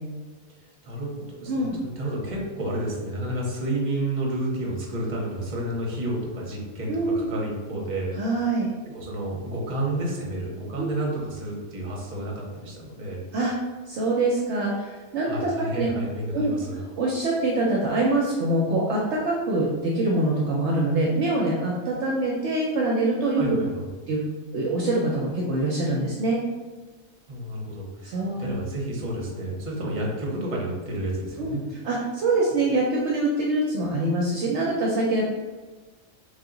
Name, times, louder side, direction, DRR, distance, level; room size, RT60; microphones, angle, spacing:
voice 1, 0.8-8.2 8.9-13.2 15.2-16.8 23.4-23.9 27.3-31.6, right 1 dB, 40° right, -2 dB, 0.9 m, -30 dB
voice 2, 1.5-1.8 6.9-7.3 8.2-8.7 10.8-10.9 13.3-13.5 13.9-15.9 16.3-16.5 17.0-23.4 24.1-24.2 24.5-26.4 28.0-28.5 31.4-35.3, right 2 dB, 65° right, -3 dB, 0.8 m, -24 dB
3.4 x 2.8 x 3.8 m, 1.3 s
omnidirectional pair, 1.4 m